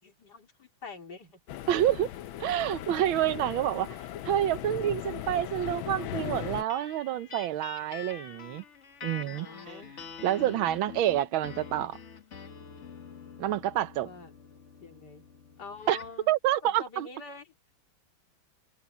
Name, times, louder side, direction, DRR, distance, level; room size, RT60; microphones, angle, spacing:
voice 1, 0.0-1.4 9.3-9.9 14.0-14.3 14.8-15.2 15.6-16.3 16.6-17.5, left 4 dB, 55° left, 3.5 m, -45 dB
sound 1, 1.5-6.6, left 12 dB, 80° left, 1.5 m, -38 dB
voice 2, 1.7-2.1 2.4-3.9 4.2-8.6 9.0-9.7 10.2-12.0 13.4-14.1 15.9-16.0 16.3-17.1, right 12 dB, 90° right, 1.6 m, -28 dB
sound 2, 6.7-16.2, left 6 dB, 40° left, 1.5 m, -46 dB
omnidirectional pair, 2.1 m